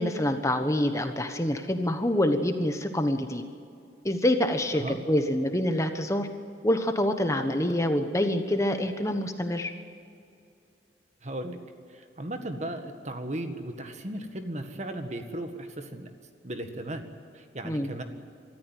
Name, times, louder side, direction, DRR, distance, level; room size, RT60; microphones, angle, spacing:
voice 1, 0.0-3.4 4.0-6.3 6.6-9.7 17.6-17.9, left 1 dB, 15° left, 7 dB, 1.2 m, -26 dB
voice 2, 11.2-11.6 11.9-16.1 16.4-17.0 17.3-18.0, right 1 dB, 40° right, 6 dB, 1.7 m, -36 dB
24.0 x 14.0 x 9.2 m, 2.4 s
head